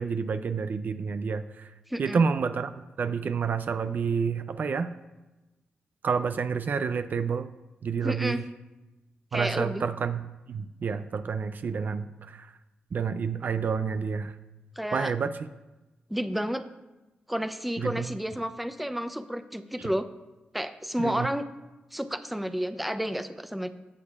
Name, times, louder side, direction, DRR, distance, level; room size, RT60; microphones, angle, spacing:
voice 1, 0.0-1.7 2.0-2.7 3.0-4.9 6.0-7.5 7.8-8.4 9.3-12.5 12.9-14.3 14.9-15.3 17.8-18.1 21.0-21.3, right 6 dB, 60° right, 10 dB, 0.4 m, -29 dB
voice 2, 1.9-2.2 8.0-8.4 9.3-9.8 14.8-15.1 16.1-16.6 17.3-20.1 20.5-21.4 21.9-23.7, equal, 5° right, 10 dB, 0.5 m, -31 dB
16.5 x 6.6 x 2.4 m, 1.1 s
cardioid pair, 85°, 4 cm